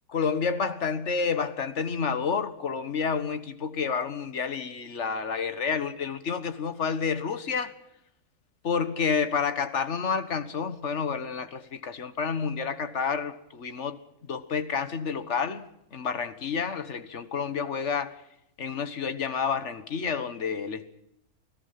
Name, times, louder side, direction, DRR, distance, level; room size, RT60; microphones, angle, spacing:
voice 1, 0.1-7.7 8.6-14.0 14.3-15.6 15.9-18.2 18.6-20.9, left 6 dB, 50° left, 1.6 m, -29 dB
29.0 x 17.5 x 5.8 m
omnidirectional pair, 1.6 m